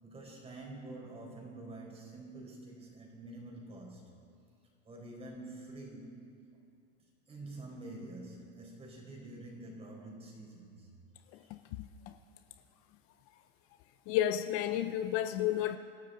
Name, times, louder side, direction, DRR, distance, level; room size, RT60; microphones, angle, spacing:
voice 1, 0.0-4.1 4.8-6.3 7.3-10.9 11.4-11.5, right 2 dB, 20° right, -1 dB, 4.4 m, -47 dB
voice 2, 14.1-15.8, left 11 dB, 50° left, 9 dB, 0.6 m, -31 dB
29.0 x 12.5 x 3.9 m, 2.4 s
supercardioid pair, 135°, 30 cm